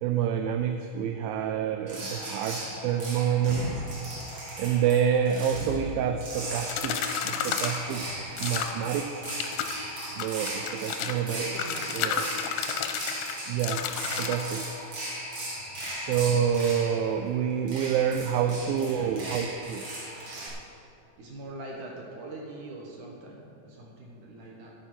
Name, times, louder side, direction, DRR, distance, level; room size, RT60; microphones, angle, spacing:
voice 1, 0.0-3.8 4.4-8.1 8.4-9.2 10.2-11.6 11.9-12.3 13.5-13.9 14.2-14.7 15.9-19.9, right 8 dB, 80° right, 7 dB, 2.2 m, -28 dB
sound 1, 1.9-20.5, right 1 dB, 40° right, 1.8 m, -37 dB
sound 2, 6.7-7.8 8.4-8.8 9.2-9.7 10.2-11.2 11.6-14.4, left 8 dB, 90° left, 2.6 m, -32 dB
voice 2, 11.3-12.3 18.3-19.5 20.3-20.5 21.2-24.7, right 2 dB, 65° right, -1 dB, 2.4 m, -43 dB
11.0 x 8.8 x 5.8 m, 2.7 s
omnidirectional pair, 4.3 m